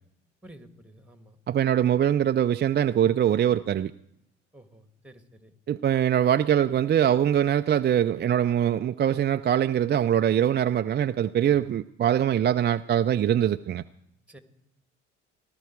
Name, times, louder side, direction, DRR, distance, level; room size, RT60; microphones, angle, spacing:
voice 1, 0.4-1.4 4.5-5.5 14.3-14.4, right 1 dB, 5° right, 2.1 m, -51 dB
voice 2, 1.5-3.9 5.7-13.8, right 10 dB, 30° right, 0.4 m, -23 dB
18.0 x 12.5 x 4.7 m
hypercardioid pair, 50°, 35 cm